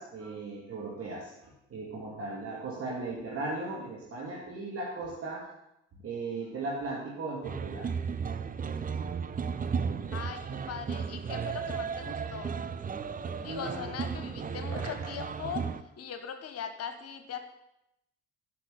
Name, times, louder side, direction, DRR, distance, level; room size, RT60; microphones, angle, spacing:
voice 1, 0.0-5.5 6.0-7.9 13.5-14.1 14.7-14.8, right 3 dB, 45° right, -3 dB, 2.5 m, -37 dB
sound 1, 7.4-15.8, right 6 dB, 25° right, 0.7 m, -34 dB
voice 2, 10.1-12.6 13.4-15.7 16.0-17.4, left 8 dB, 45° left, 8 dB, 1.3 m, -40 dB
9.6 x 5.9 x 7.9 m, 0.84 s
figure-of-eight pair, 50°, 33 cm